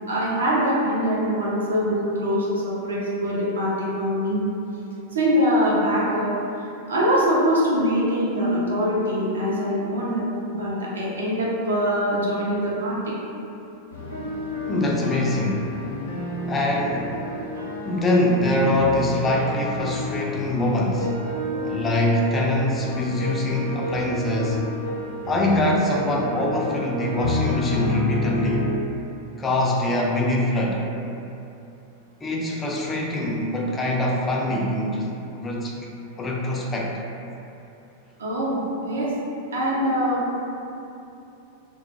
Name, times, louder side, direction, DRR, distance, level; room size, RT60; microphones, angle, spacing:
voice 1, 0.1-4.5 5.1-6.3 6.9-10.2 10.5-13.1 38.2-38.6 38.9-39.1 39.5-40.2, equal, 70° right, -6 dB, 0.5 m, -23 dB
sound 1, 13.9-28.7, left 1 dB, 80° left, 0.6 m, -30 dB
voice 2, 14.7-15.7 16.5-17.2 17.8-21.1 21.7-24.6 25.3-28.7 29.4-30.8 32.2-35.1 35.4-35.8 36.2-36.9, left 1 dB, 20° left, -2 dB, 0.3 m, -23 dB
2.1 x 2.1 x 2.8 m, 2.8 s
figure-of-eight pair, 90°, 0 cm